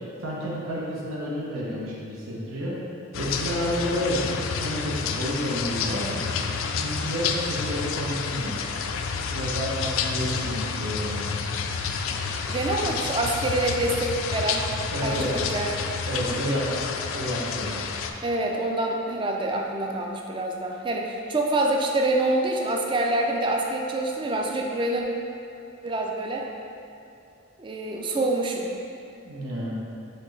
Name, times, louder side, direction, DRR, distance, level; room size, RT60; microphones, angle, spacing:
voice 1, 0.2-2.8 3.1-6.2 6.6-8.6 9.3-11.3 14.9-15.3 16.1-16.8 17.1-17.8 29.2-29.8, equal, 90° right, -5 dB, 0.8 m, -30 dB
sound 1, 3.1-18.1, left 5 dB, 80° left, 0.3 m, -29 dB
voice 2, 12.5-14.6 15.0-15.7 18.2-25.0 25.8-26.5 27.6-28.7, right 2 dB, 25° right, 1 dB, 0.3 m, -26 dB
4.3 x 3.8 x 3.2 m, 2.7 s
head